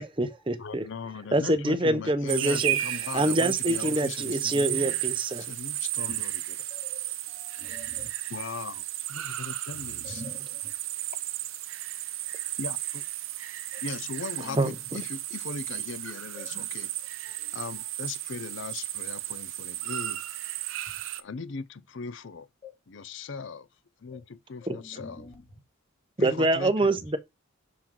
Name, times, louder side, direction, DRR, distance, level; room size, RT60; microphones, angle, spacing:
voice 1, 0.0-0.9 1.3-5.4 14.6-14.7 24.7-24.8 26.2-27.2, right 1 dB, 25° right, 0.8 m, -26 dB
voice 2, 0.6-4.9 5.4-6.6 8.3-8.8 9.1-10.2 12.6-13.0 13.8-16.9 17.5-20.2 21.2-22.5 22.9-23.7 24.0-25.2 26.2-26.9, left 4 dB, 55° left, 0.5 m, -39 dB
sound 1, 2.3-21.2, right 14 dB, 70° right, 0.6 m, -34 dB
voice 3, 6.7-8.1 9.8-10.7 13.7-13.8 14.4-14.9 16.3-16.7 17.2-17.5 22.6-22.7 24.1-24.2 24.6-25.4, left 2 dB, 30° left, 1.9 m, -46 dB
6.1 x 6.0 x 3.8 m
head